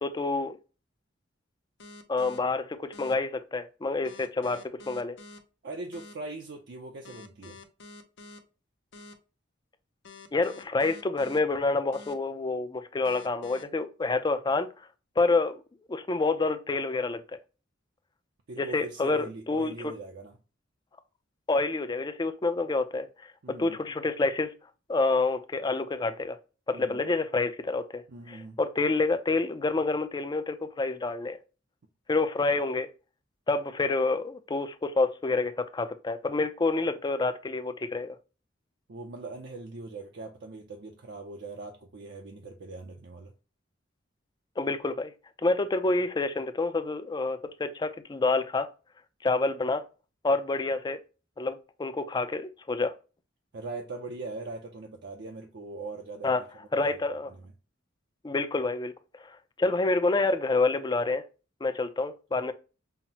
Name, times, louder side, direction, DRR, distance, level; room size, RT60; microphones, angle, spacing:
voice 1, 0.0-0.6 2.1-5.2 10.3-14.7 15.2-15.6 15.9-17.2 18.6-19.7 21.5-24.5 24.9-26.4 26.7-28.0 28.3-31.4 32.1-32.9 33.5-38.1 44.6-45.1 45.4-48.7 49.2-49.8 50.2-51.0 51.4-52.9 56.2-56.4 56.7-57.3 58.2-58.9 59.2-61.2 61.6-62.5, left 3 dB, 20° left, 0.4 m, -28 dB
sound 1, 1.8-2.4 2.9-3.1 4.0-5.4 5.9-6.1 7.0-8.4 8.9-9.1 10.0-11.4 11.9-12.1 13.0-13.6, left 3 dB, 65° left, 0.6 m, -47 dB
voice 2, 5.6-7.6 18.5-20.4 23.4-23.8 26.7-27.0 28.1-28.6 38.9-43.3 53.5-56.4 56.7-57.0 57.3-57.4, right 3 dB, 60° right, 0.5 m, -41 dB
5.6 x 2.0 x 2.8 m
head